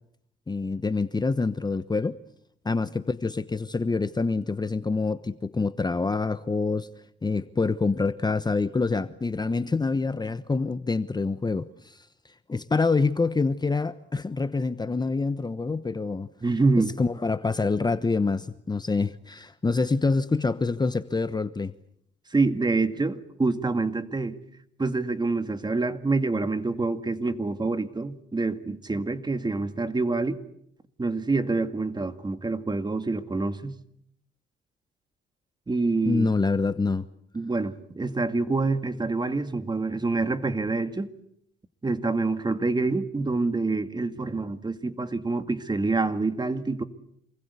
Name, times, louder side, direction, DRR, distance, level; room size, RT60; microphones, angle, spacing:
voice 1, 0.5-2.2 2.6-6.9 7.2-12.1 12.5-16.3 16.8-21.7 36.1-37.0, left 4 dB, 20° left, 1.0 m, -26 dB
voice 2, 16.4-16.9 22.3-24.4 24.8-30.4 31.0-33.8 35.7-36.3 37.3-41.1 41.8-46.8, right 3 dB, 20° right, 2.1 m, -26 dB
28.0 x 20.5 x 8.3 m
cardioid pair, 90°, 20 cm